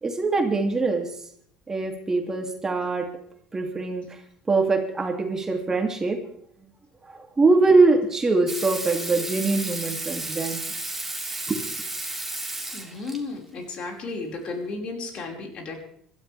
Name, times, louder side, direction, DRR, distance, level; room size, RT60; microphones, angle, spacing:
voice 1, 0.0-1.1 1.7-3.1 3.5-4.1 4.5-6.2 7.1-10.6 11.5-11.6, right 3 dB, 25° right, 3 dB, 2.8 m, -23 dB
Water tap faucet / Sink (filling or washing), 8.5-13.2 14.7-14.8, right 2 dB, 5° right, 3.2 m, -33 dB
voice 2, 12.7-15.8, left 3 dB, 50° left, 1 dB, 5.3 m, -33 dB
26.0 x 13.0 x 3.5 m, 0.67 s
hypercardioid pair, 65°, 2 cm